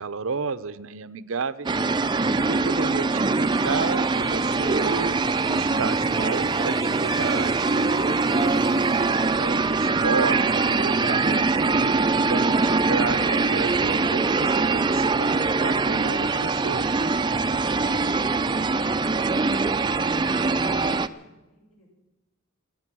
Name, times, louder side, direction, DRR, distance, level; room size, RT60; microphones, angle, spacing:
voice 1, 0.0-1.7 2.4-8.7 9.3-11.7 12.3-17.0, right 4 dB, 70° right, 14 dB, 0.7 m, -32 dB
sound 1, 1.7-21.1, right 3 dB, 20° right, 0.5 m, -23 dB
sound 2, 3.3-10.3, equal, ahead, 0.8 m, -45 dB
voice 2, 21.0-21.9, left 1 dB, 70° left, -3 dB, 7.5 m, -58 dB
26.0 x 8.8 x 6.1 m, 1.0 s
head